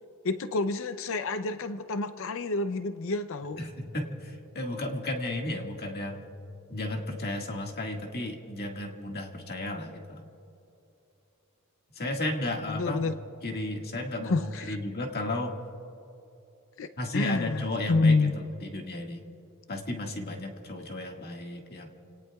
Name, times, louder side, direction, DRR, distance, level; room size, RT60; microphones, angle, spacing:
voice 1, 0.2-3.6 12.7-13.1 14.2-14.8 16.8-18.3, left 3 dB, 65° left, 10 dB, 0.6 m, -28 dB
voice 2, 3.6-6.3 6.7-10.2 12.0-13.1 13.4-15.6 17.0-19.2 19.7-21.9, left 1 dB, 50° left, 1 dB, 1.8 m, -34 dB
30.0 x 18.5 x 2.4 m, 2.8 s
head